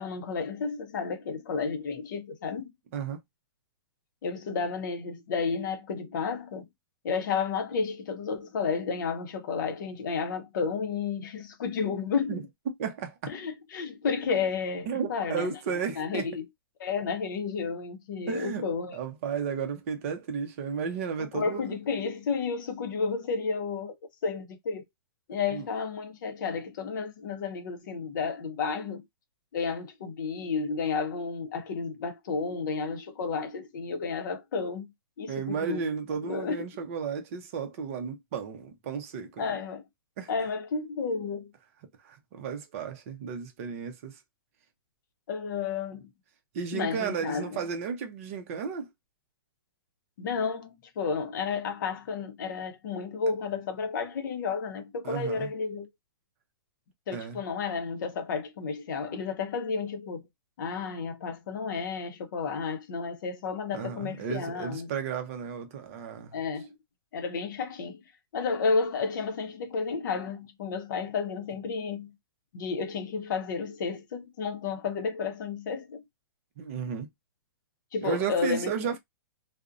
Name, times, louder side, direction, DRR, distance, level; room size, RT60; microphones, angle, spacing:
voice 1, 0.0-2.7 4.2-6.7 7.0-12.5 13.3-15.5 16.0-16.4 16.8-19.0 21.2-24.0 24.2-24.8 25.3-29.0 29.5-34.9 35.2-35.8 36.2-36.5 39.4-39.8 40.3-41.5 45.3-46.1 46.7-47.6 50.2-55.9 57.1-60.2 60.6-64.9 66.3-66.7 67.1-68.0 68.3-72.1 72.5-76.0 77.9-78.7, left 5 dB, 55° left, 0.6 m, -32 dB
voice 2, 12.3-13.3 14.9-16.3 18.3-18.7 18.9-21.7 25.5-25.7 35.3-39.6 40.2-40.3 42.0-44.2 46.5-48.9 55.0-55.5 57.1-57.4 63.7-66.4 76.6-77.1 78.0-79.0, right 6 dB, 35° right, 0.6 m, -33 dB
2.5 x 2.0 x 2.4 m
hypercardioid pair, 165°, 13 cm